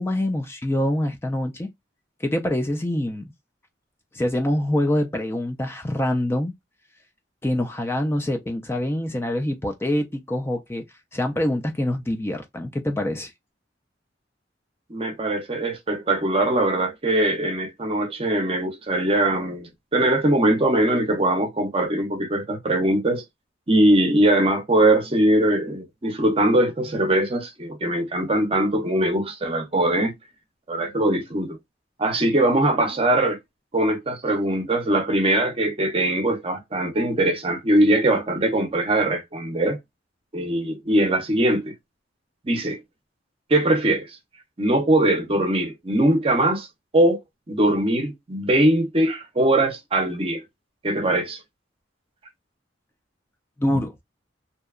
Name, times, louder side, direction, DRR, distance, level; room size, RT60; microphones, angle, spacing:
voice 1, 0.0-1.7 2.2-3.3 4.1-6.5 7.4-10.8 11.1-13.3 53.6-53.9, left 1 dB, 15° left, 0.3 m, -25 dB
voice 2, 14.9-23.2 23.7-30.2 30.7-31.6 32.0-33.4 33.7-39.8 40.3-41.7 42.4-42.8 43.5-44.2 44.6-46.7 46.9-47.2 47.5-50.4 50.8-51.4, right 1 dB, 30° right, 0.6 m, -21 dB
2.8 x 2.2 x 2.3 m
head